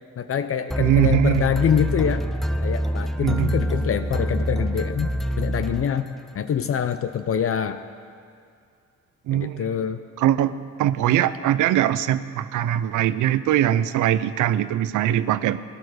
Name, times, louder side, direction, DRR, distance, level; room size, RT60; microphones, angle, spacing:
voice 1, 0.2-2.3 2.6-5.1 5.4-6.1 6.3-7.8 9.3-10.0, left 8 dB, 50° left, 10 dB, 0.7 m, -25 dB
sound 1, 0.7-6.4, equal, ahead, 0.6 m, -26 dB
voice 2, 0.8-1.5 3.2-3.6 9.3-9.6 10.2-10.5 10.8-15.6, right 12 dB, 80° right, 15 dB, 0.6 m, -21 dB
18.0 x 10.5 x 6.4 m, 2.3 s
cardioid pair, 90°, 30 cm